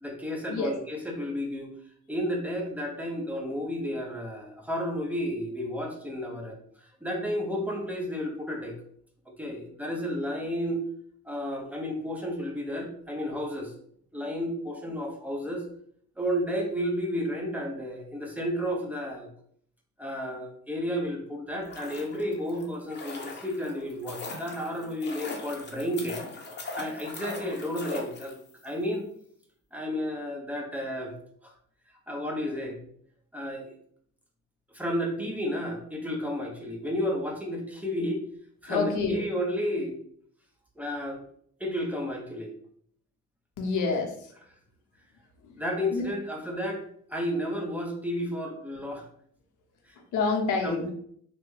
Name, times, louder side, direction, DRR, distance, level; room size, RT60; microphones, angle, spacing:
voice 1, 0.0-1.7 2.1-6.5 7.0-8.8 9.3-10.8 11.3-13.7 14.1-15.6 16.2-19.3 20.0-26.2 26.8-28.3 28.6-29.1 29.7-31.1 31.4-31.5 32.1-32.8 33.3-33.8 34.7-38.2 38.6-40.0 40.8-41.2 41.6-42.5 45.6-46.8 47.1-49.0 49.9-50.0 50.6-50.9, equal, 5° right, 0 dB, 0.7 m, -32 dB
sound 1, 21.5-28.7 28.9-29.0, left 2 dB, 35° left, 0.8 m, -40 dB
voice 2, 38.7-39.2 43.6-44.3 45.4-45.6 45.9-46.1 50.0-50.9, left 4 dB, 80° left, 4 dB, 0.7 m, -28 dB
3.3 x 2.1 x 3.1 m, 0.64 s
cardioid pair, 90°, 30 cm